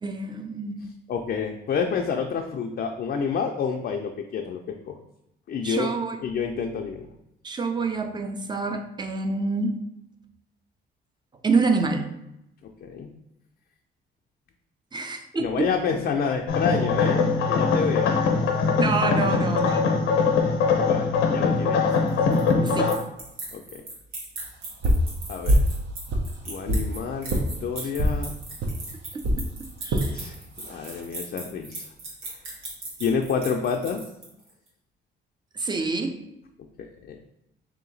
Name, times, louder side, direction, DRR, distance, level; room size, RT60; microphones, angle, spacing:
voice 1, 0.0-0.9 5.6-6.2 7.4-9.8 11.4-12.1 14.9-15.7 18.8-20.0 22.6-23.0 29.1-30.2 35.5-36.1, right 3 dB, 20° right, 5 dB, 0.5 m, -27 dB
voice 2, 1.1-4.9 5.5-5.9 6.2-7.1 12.8-13.1 15.4-18.2 19.2-20.0 20.8-21.8 23.5-23.8 25.3-25.6 26.5-28.3 30.1-30.4 30.7-31.9 33.0-34.0 36.8-37.2, left 6 dB, 50° left, 2 dB, 0.4 m, -29 dB
sound 1, 16.5-22.9, left 4 dB, 90° left, 0.7 m, -22 dB
sound 2, 21.9-34.5, right 2 dB, 80° right, 1.4 m, -38 dB
sound 3, 24.8-25.1 25.5-25.8 26.1-26.9 27.3-27.5 28.0-28.2 28.6-28.8 29.2-29.4 29.9-30.1 30.7-31.0, equal, 65° right, 0.7 m, -22 dB
3.5 x 2.8 x 3.9 m, 0.85 s
cardioid pair, 90°, 20 cm